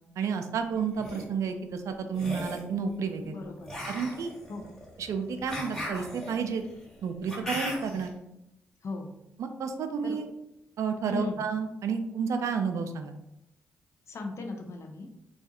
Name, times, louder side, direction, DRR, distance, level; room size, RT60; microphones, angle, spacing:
voice 1, 0.2-3.4 3.9-4.3 5.0-6.6 7.0-8.1 9.4-10.3 10.8-13.1, right 6 dB, 60° right, 6 dB, 0.3 m, -31 dB
sound 1, 0.8-1.2 2.1-2.7 3.6-8.1, equal, 10° left, 1.3 m, -38 dB
voice 2, 3.2-3.7 4.5-4.7 8.8-9.1 10.0-10.2 11.0-11.4 14.1-15.1, left 3 dB, 55° left, 3 dB, 0.5 m, -37 dB
2.3 x 2.3 x 2.8 m, 0.86 s
hypercardioid pair, 45°, 6 cm